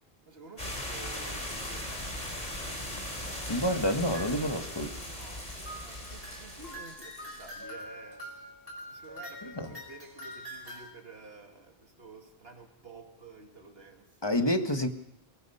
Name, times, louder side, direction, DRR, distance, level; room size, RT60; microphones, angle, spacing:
voice 1, 0.3-2.1 5.0-8.3 8.8-14.3, right 3 dB, 75° right, 3 dB, 2.9 m, -51 dB
sound 1, 0.6-6.8, left 1 dB, 40° left, 4.1 m, -38 dB
Rattle, 1.4-7.6, left 1 dB, 85° left, 7.3 m, -51 dB
voice 2, 3.5-5.0 9.6-9.7 14.2-14.9, equal, 25° left, 7 dB, 1.5 m, -28 dB
sound 2, 3.7-4.7 5.6-10.9, equal, 20° right, 4.7 m, -45 dB
22.5 x 22.0 x 5.5 m, 0.79 s
omnidirectional pair, 1.0 m